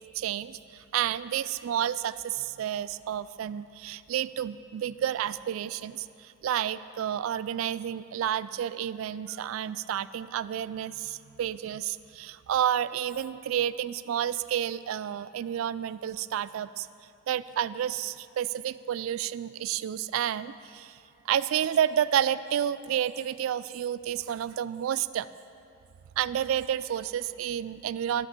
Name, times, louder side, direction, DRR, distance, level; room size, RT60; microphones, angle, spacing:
voice 1, 0.2-16.9 17.3-21.0 21.3-25.3 26.2-28.3, right 10 dB, 90° right, 17 dB, 0.3 m, -30 dB
12.5 x 7.0 x 7.5 m, 2.5 s
head